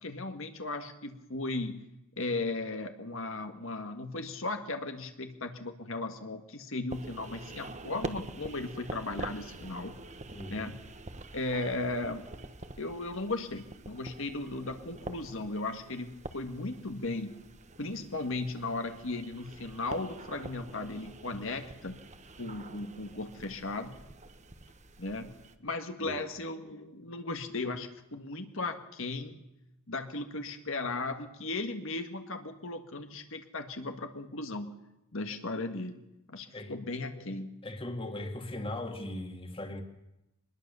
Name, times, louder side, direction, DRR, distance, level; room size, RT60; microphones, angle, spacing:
voice 1, 0.0-1.9 2.2-10.0 10.5-10.8 11.3-12.3 12.8-17.4 17.8-22.0 22.4-24.0 25.0-29.4 29.9-34.8 35.1-36.0 36.3-37.5, left 2 dB, 60° left, 1.7 m, -36 dB
sound 1, 6.9-25.6, right 2 dB, 30° right, 1.3 m, -46 dB
voice 2, 10.3-10.7 26.0-26.2 36.5-36.7 37.6-39.8, left 1 dB, 25° left, 2.2 m, -38 dB
24.5 x 20.5 x 6.9 m
head